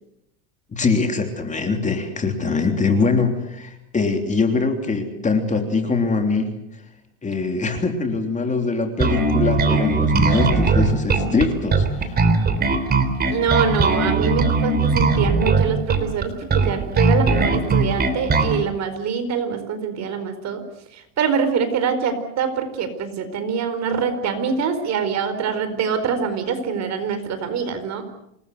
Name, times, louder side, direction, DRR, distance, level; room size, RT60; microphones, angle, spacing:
voice 1, 0.7-6.5 7.2-12.2, left 4 dB, 15° left, 5 dB, 3.3 m, -22 dB
Bass guitar, 9.0-18.6, right 3 dB, 20° right, 3.6 m, -19 dB
voice 2, 13.3-20.6 20.9-28.0, right 6 dB, 40° right, 10 dB, 4.5 m, -24 dB
27.5 x 20.5 x 8.1 m, 0.82 s
supercardioid pair, 135°, 43 cm